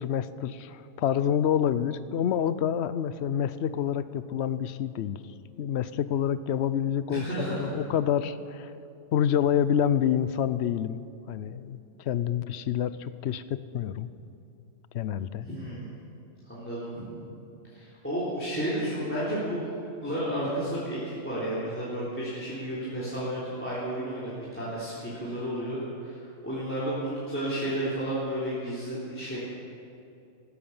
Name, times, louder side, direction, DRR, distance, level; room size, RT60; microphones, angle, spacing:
voice 1, 0.0-5.2 5.6-8.7 9.1-14.1 14.9-15.5, left 9 dB, 60° left, 14 dB, 0.8 m, -28 dB
voice 2, 7.1-7.7 15.4-15.9 16.4-17.1 17.7-29.4, right 1 dB, 10° left, -10 dB, 3.4 m, -32 dB
15.5 x 13.0 x 7.1 m, 2.7 s
omnidirectional pair, 1.4 m